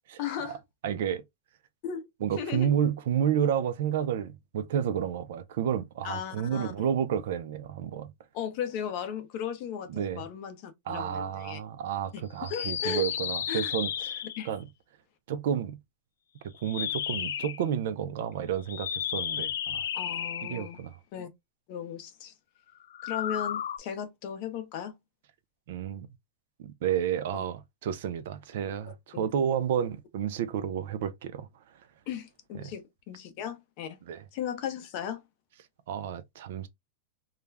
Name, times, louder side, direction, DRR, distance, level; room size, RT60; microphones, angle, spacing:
voice 1, 0.2-0.6 1.8-2.1 2.4-2.7 6.0-6.7 8.3-11.6 12.5-13.1 13.5-13.7 14.4-14.5 19.9-20.8 21.1-21.3 21.7-22.3 23.0-24.9 27.3-27.4 29.1-29.3 32.1-34.0 34.3-35.2, left 8 dB, 40° left, 0.6 m, -36 dB
voice 2, 0.8-1.2 2.2-8.1 9.9-10.2 10.9-14.7 15.3-15.8 16.6-19.9 20.5-21.0 25.7-26.1 26.6-31.5 32.6-32.7 34.1-34.2 35.9-36.7, right 9 dB, 60° right, 0.4 m, -31 dB
sound 1, 12.4-14.5 16.6-17.6 18.6-20.8 22.9-23.8, left 9 dB, 90° left, 0.3 m, -33 dB
2.3 x 2.1 x 3.2 m
supercardioid pair, 165°, 0 cm